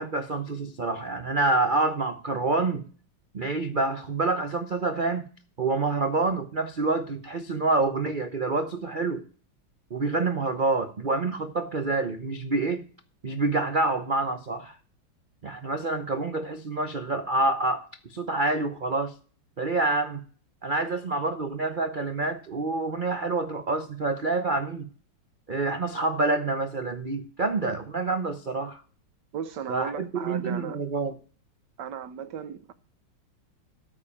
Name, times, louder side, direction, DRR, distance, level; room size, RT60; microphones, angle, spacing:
voice 1, 0.0-2.8 3.3-5.3 5.6-9.2 9.9-12.9 13.2-14.8 15.4-19.1 19.6-20.2 20.6-24.9 25.5-28.8 29.7-31.2, right 3 dB, 85° right, 0.4 m, -27 dB
voice 2, 29.3-30.8 31.8-32.7, right 8 dB, 65° right, 1.2 m, -36 dB
13.5 x 4.7 x 8.5 m
omnidirectional pair, 2.2 m